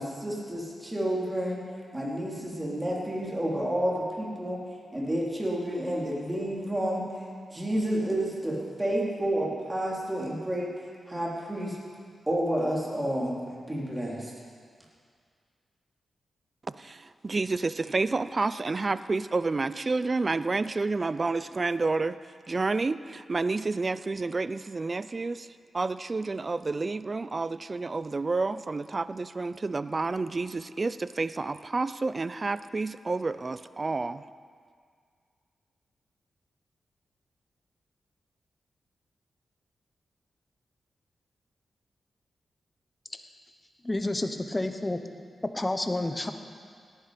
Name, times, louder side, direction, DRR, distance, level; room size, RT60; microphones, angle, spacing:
voice 1, 0.0-1.6 1.9-4.6 4.9-7.0 7.5-10.7 11.1-11.8 12.3-14.3, right 1 dB, 15° right, -4 dB, 3.6 m, -30 dB
voice 2, 16.7-22.2 22.5-34.2, right 3 dB, 40° right, 15 dB, 0.5 m, -30 dB
voice 3, 43.8-45.0 45.4-46.3, left 2 dB, 20° left, 7 dB, 1.1 m, -29 dB
17.5 x 10.5 x 5.2 m, 2.1 s
cardioid pair, 60°, 0 cm